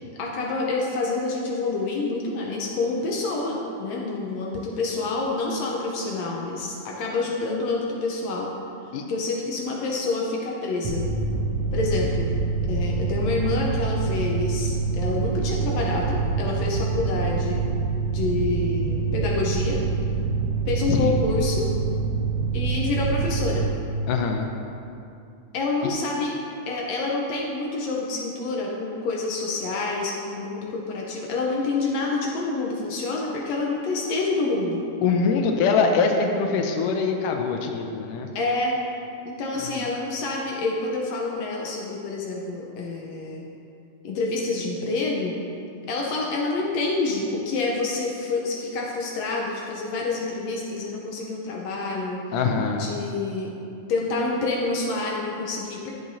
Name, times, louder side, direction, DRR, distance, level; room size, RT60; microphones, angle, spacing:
voice 1, 0.2-8.5 9.1-11.1 11.7-12.3 12.7-17.7 18.1-19.8 20.7-21.7 22.5-23.7 25.5-26.3 26.7-34.8 38.3-38.7 39.2-43.4 44.0-45.4 45.9-52.2 52.8-53.5 53.9-55.9, left 3 dB, 70° left, -2 dB, 1.7 m, -27 dB
Mechanical fan, 10.8-23.6, right 4 dB, 80° right, 1.4 m, -26 dB
voice 2, 24.1-24.5 35.0-38.3 39.6-39.9 52.3-52.9, left 5 dB, 90° left, 3 dB, 2.2 m, -23 dB
12.0 x 7.7 x 2.7 m, 2.7 s
omnidirectional pair, 3.7 m